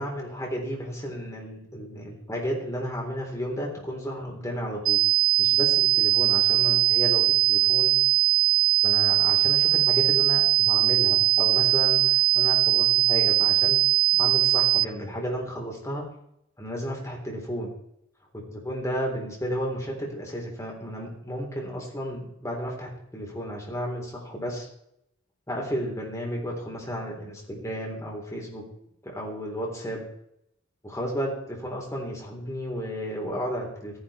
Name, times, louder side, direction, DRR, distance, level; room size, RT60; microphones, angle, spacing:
voice 1, 0.0-5.0 5.4-7.9 8.8-13.8 14.1-16.1 16.6-17.7 18.5-24.7 25.5-28.6 29.0-30.0 30.8-34.0, equal, 15° left, -1 dB, 3.9 m, -33 dB
sound 1, 4.9-14.9, right 14 dB, 70° right, 0.5 m, -21 dB
14.5 x 10.5 x 4.4 m, 0.75 s
head